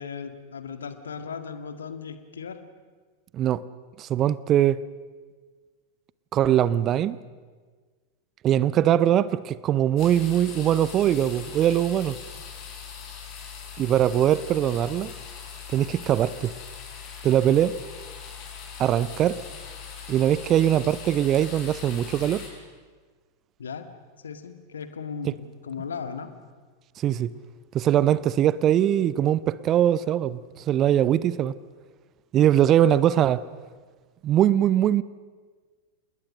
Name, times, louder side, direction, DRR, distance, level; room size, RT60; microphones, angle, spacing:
voice 1, 0.0-2.6 23.6-23.9 24.2-26.3, left 6 dB, 70° left, 1.8 m, -36 dB
voice 2, 4.0-4.8 6.3-7.2 8.4-12.2 13.8-15.1 15.7-16.5 17.2-17.7 18.8-19.4 20.1-22.4 25.2-25.3 27.0-27.3 27.7-30.4 30.7-31.5 32.3-33.4 34.2-35.0, right 11 dB, 30° right, 0.6 m, -21 dB
sound 1, 10.0-22.5, left 7 dB, 40° left, 6.2 m, -41 dB
28.0 x 20.5 x 6.5 m
figure-of-eight pair, 90°, 0 cm